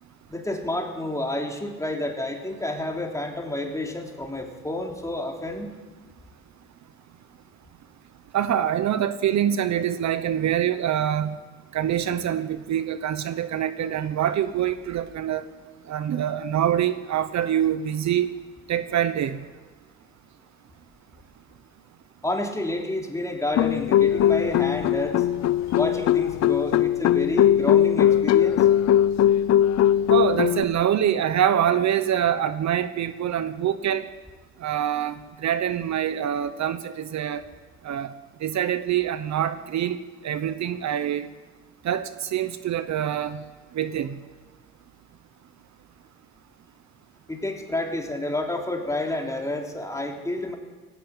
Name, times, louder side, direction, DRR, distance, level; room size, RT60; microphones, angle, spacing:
voice 1, 0.3-5.8 22.2-25.3 25.7-28.7 47.3-50.5, left 1 dB, 10° left, 1 dB, 3.8 m, -29 dB
voice 2, 8.3-11.4 11.7-15.4 15.9-18.3 18.7-19.4 30.1-34.0 34.6-37.4 37.8-38.1 38.4-40.0 40.2-41.3 41.8-43.4 43.7-44.2, right 10 dB, 65° right, 12 dB, 1.0 m, -25 dB
sound 1, 23.5-30.6, left 11 dB, 60° left, 0.6 m, -20 dB
18.0 x 16.0 x 9.1 m, 1.4 s
cardioid pair, 90°, 30 cm